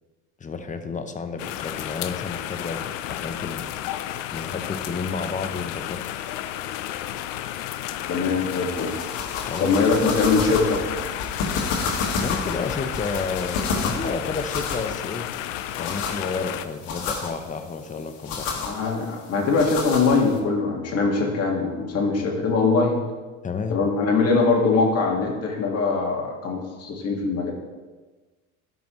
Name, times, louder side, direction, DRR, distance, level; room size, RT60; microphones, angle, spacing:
voice 1, 0.4-3.7 4.3-6.0 9.5-9.8 12.2-15.3 15.8-18.7 23.4-23.8, left 4 dB, 20° left, 8 dB, 0.7 m, -31 dB
sound 1, 1.4-16.7, left 12 dB, 85° left, 0.6 m, -32 dB
voice 2, 8.1-8.9 9.6-10.8 18.6-23.0 23.7-27.5, left 4 dB, 40° left, 0 dB, 1.8 m, -22 dB
sound 2, 8.4-20.4, left 4 dB, 65° left, 1.7 m, -31 dB
12.0 x 5.4 x 3.1 m, 1.3 s
supercardioid pair, 100°, 37 cm